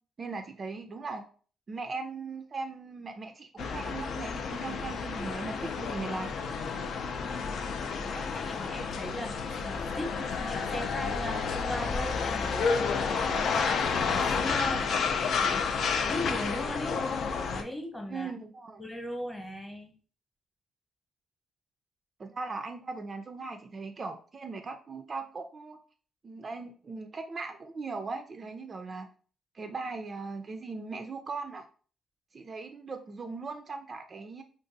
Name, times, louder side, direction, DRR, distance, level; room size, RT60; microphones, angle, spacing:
voice 1, 0.2-1.2 1.7-6.3 18.1-18.8 22.2-25.8 26.2-29.1 29.5-31.7 32.3-34.4, right 4 dB, 40° right, 6 dB, 0.3 m, -39 dB
sound 1, 3.6-17.6, left 5 dB, 65° left, 0.4 m, -30 dB
voice 2, 7.9-18.3 18.8-19.9, left 1 dB, 10° left, 3 dB, 0.9 m, -38 dB
2.5 x 2.3 x 3.8 m, 0.41 s
cardioid pair, 90°, 0 cm